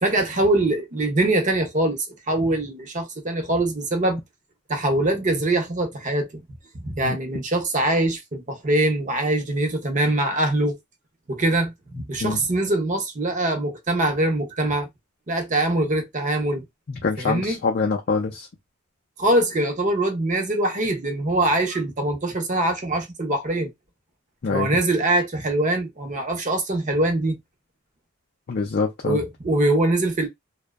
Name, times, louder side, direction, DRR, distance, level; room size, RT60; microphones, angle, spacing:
voice 1, 0.0-4.2 4.7-6.4 6.7-10.8 11.3-14.9 15.3-16.6 17.2-17.6 19.2-23.7 24.5-27.4 29.0-30.3, right 1 dB, 35° right, 0.6 m, -23 dB
voice 2, 16.9-18.5 24.4-24.7 28.5-29.2, left 4 dB, 45° left, 0.4 m, -25 dB
2.6 x 2.1 x 2.3 m
head